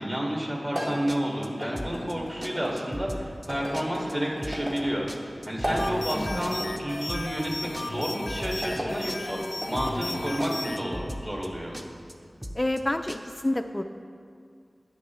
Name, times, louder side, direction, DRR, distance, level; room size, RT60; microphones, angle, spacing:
voice 1, 0.0-9.4 9.7-11.8, equal, 35° right, -2 dB, 2.0 m, -30 dB
sound 1, 0.7-2.7 3.5-4.8 5.5-6.7 7.6-8.9 9.5-10.9, equal, 75° right, 2.1 m, -35 dB
sound 2, 1.1-1.5 1.7-2.1 2.4-2.5 2.8-3.5 3.7-4.1 4.4-4.8 5.1-6.8 7.1-7.5 7.7-8.8 9.1-9.5 9.7-10.1 10.4-10.5 10.8-11.5 11.7-12.1 12.4-12.8 13.1-13.2, equal, 10° right, 0.7 m, -37 dB
sound 3, 5.8-10.8, left 2 dB, 90° left, 0.5 m, -36 dB
voice 2, 6.1-6.5 12.5-13.8, left 1 dB, 30° left, 7 dB, 0.4 m, -29 dB
10.5 x 9.2 x 3.1 m, 2.2 s
wide cardioid pair, 40°, 0 cm